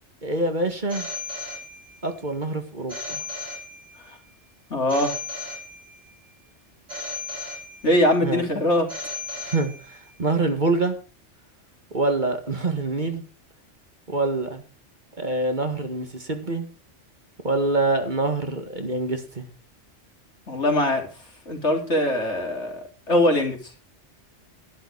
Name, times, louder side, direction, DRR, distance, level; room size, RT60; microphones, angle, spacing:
voice 1, 0.2-1.1 2.0-3.2 8.2-8.5 9.4-11.0 11.9-13.2 14.1-14.6 15.2-16.7 17.4-19.5, right 2 dB, 40° right, 6 dB, 2.0 m, -25 dB
Telephone, 0.9-2.1 2.9-4.1 4.9-6.1 6.9-8.1 8.9-10.1, left 3 dB, 85° right, 3.1 m, -35 dB
voice 2, 4.7-5.1 7.8-8.9 20.5-21.0 21.5-22.8 23.1-23.6, left 1 dB, 70° left, 2 dB, 3.6 m, -21 dB
11.5 x 11.5 x 4.7 m, 0.35 s
omnidirectional pair, 1.2 m